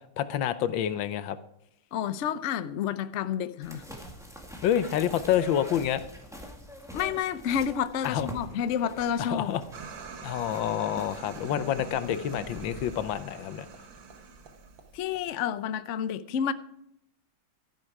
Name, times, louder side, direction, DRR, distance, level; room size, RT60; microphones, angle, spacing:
voice 1, 0.2-1.4 4.6-6.0 8.0-8.3 9.2-9.6 10.2-13.6, left 10 dB, 85° left, 1.5 m, -28 dB
voice 2, 1.9-3.8 6.9-9.5 14.9-16.5, left 8 dB, 70° left, 0.7 m, -30 dB
sound 1, 3.6-13.2, equal, ahead, 1.9 m, -45 dB
sound 2, 9.7-15.3, right 5 dB, 75° right, 2.1 m, -44 dB
13.5 x 10.5 x 4.8 m
omnidirectional pair, 2.1 m